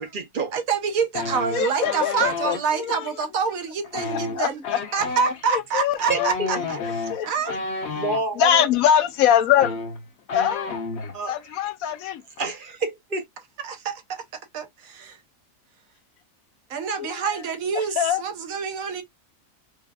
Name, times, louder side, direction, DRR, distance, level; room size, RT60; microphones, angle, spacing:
voice 1, 0.0-0.5 6.1-6.5 7.9-8.6 11.1-11.3 12.4-13.2, right 3 dB, 45° right, 0.8 m, -28 dB
voice 2, 0.5-4.6 4.9-7.6 13.6-15.2 16.7-19.0, right 6 dB, 75° right, 1.2 m, -27 dB
sound 1, 1.1-2.6 3.8-8.2 9.2-9.3 9.5-11.2 11.4-11.7 12.0-12.4, left 4 dB, 55° left, 1.1 m, -31 dB
voice 3, 1.5-3.1 4.1-4.8 5.5-6.3 7.1-7.6 7.9-8.0 8.4-9.8 10.3-10.8 11.3-12.2 16.8-17.4 17.7-18.2, left 10 dB, 85° left, 1.1 m, -23 dB
4.9 x 2.4 x 2.3 m
omnidirectional pair, 1.4 m